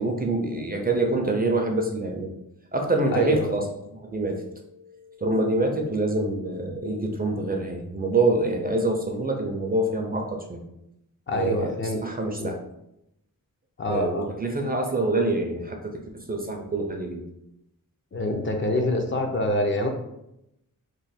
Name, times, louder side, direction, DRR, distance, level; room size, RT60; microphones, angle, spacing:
voice 1, 0.0-2.3 2.7-3.7 4.0-4.5 5.2-10.6 11.3-12.6 13.9-17.2, right 2 dB, 30° right, 2 dB, 0.4 m, -26 dB
voice 2, 3.1-3.5 11.3-12.0 12.4-12.6 13.8-14.3 18.1-19.9, left 1 dB, 35° left, 2 dB, 0.5 m, -26 dB
3.1 x 2.2 x 4.1 m, 0.82 s
wide cardioid pair, 130°, 33 cm